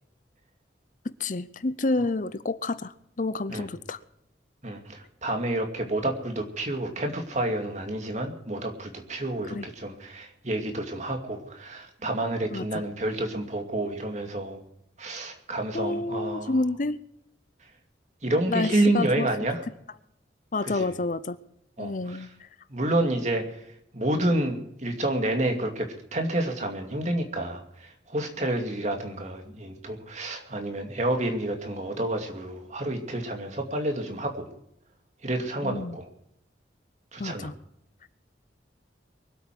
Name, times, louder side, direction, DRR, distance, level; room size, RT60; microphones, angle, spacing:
voice 1, 1.0-4.0 9.5-9.7 12.5-12.7 15.7-17.0 18.5-19.3 20.5-21.4 21.8-22.5 35.6-36.0 37.2-37.5, left 2 dB, 45° left, 0.6 m, -29 dB
voice 2, 4.6-14.6 15.0-16.6 18.2-19.6 20.6-20.9 21.8-22.3 22.7-23.6 23.9-34.5 35.2-36.1 37.1-37.5, right 1 dB, 40° right, 2.5 m, -29 dB
23.0 x 8.5 x 6.0 m
head